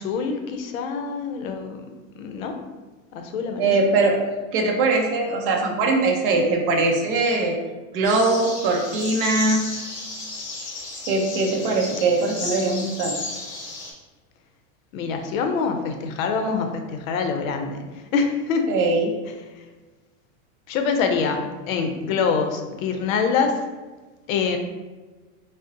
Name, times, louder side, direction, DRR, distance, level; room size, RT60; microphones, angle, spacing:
voice 1, 0.0-1.9 2.1-2.6 3.1-3.8 14.9-18.7 19.6-19.7 20.7-23.6 24.3-24.6, left 5 dB, 85° left, 5 dB, 0.6 m, -25 dB
voice 2, 3.6-4.2 4.5-7.6 7.9-9.7 11.1-13.2 18.7-19.2, right 3 dB, 40° right, 1 dB, 0.5 m, -21 dB
sound 1, 8.0-13.9, left 3 dB, 45° left, 0.8 m, -33 dB
3.7 x 2.0 x 2.6 m, 1.2 s
supercardioid pair, 165°, 40 cm